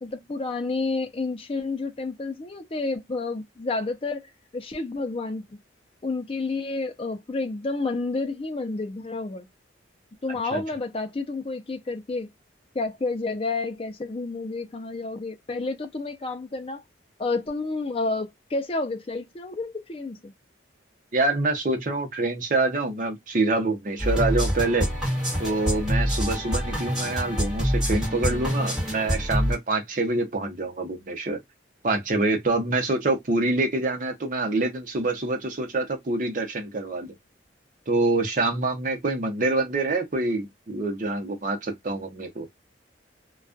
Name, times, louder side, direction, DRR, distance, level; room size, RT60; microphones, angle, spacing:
voice 1, 0.0-4.2 4.5-5.4 6.0-9.5 10.2-12.3 12.7-16.8 17.2-20.3, left 3 dB, 30° left, 0.4 m, -30 dB
voice 2, 21.1-24.9 25.4-31.4 31.8-37.1 37.9-42.5, right 2 dB, 45° right, 0.7 m, -26 dB
sound 1, 24.0-29.5, equal, 5° right, 1.2 m, -26 dB
2.3 x 2.3 x 2.5 m
head